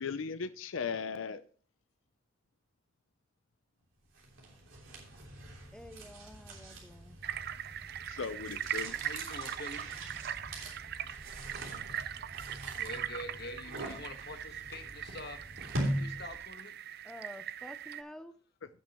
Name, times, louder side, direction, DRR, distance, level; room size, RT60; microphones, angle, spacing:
voice 1, 0.0-1.4 8.2-9.0, left 5 dB, 85° left, 0.6 m, -37 dB
sound 1, 4.1-16.5, right 1 dB, 80° right, 3.1 m, -42 dB
voice 2, 5.7-7.3 17.0-18.3, left 1 dB, 5° left, 0.5 m, -49 dB
sound 2, 7.2-18.0, right 10 dB, 55° right, 0.5 m, -40 dB
voice 3, 8.3-9.9 12.7-15.5 15.9-16.7, left 2 dB, 55° left, 1.3 m, -46 dB
17.0 x 6.2 x 3.0 m
head